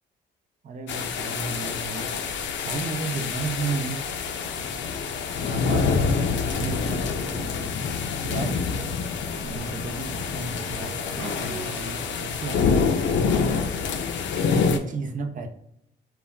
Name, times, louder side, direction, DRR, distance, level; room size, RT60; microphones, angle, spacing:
voice 1, 0.6-2.1 2.6-4.0 5.4-7.9 8.2-8.9 9.4-15.5, right 4 dB, 40° right, 6 dB, 0.5 m, -34 dB
sound 1, 0.9-14.8, left 5 dB, 70° left, 0.4 m, -27 dB
Motorcycle / Engine, 8.3-14.4, right 2 dB, 75° right, 1.1 m, -44 dB
2.3 x 2.1 x 3.5 m, 0.76 s
cardioid pair, 90°, 20 cm